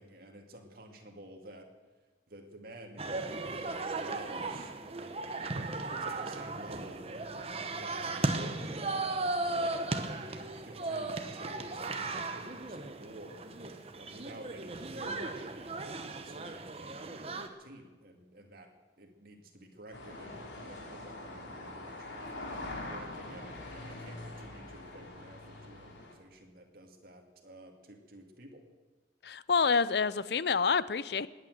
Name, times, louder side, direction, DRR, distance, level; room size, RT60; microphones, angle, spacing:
voice 1, 0.0-1.7 2.3-8.7 9.4-13.4 14.0-18.7 19.0-22.2 22.8-28.6, right 1 dB, 50° right, 2 dB, 2.3 m, -51 dB
sound 1, 3.0-17.5, right 2 dB, 30° right, 1.0 m, -36 dB
sound 2, 19.9-26.2, left 2 dB, 80° left, 3.2 m, -43 dB
voice 2, 29.2-31.3, left 5 dB, 60° left, 17 dB, 0.5 m, -28 dB
20.0 x 8.9 x 7.9 m, 1.3 s
head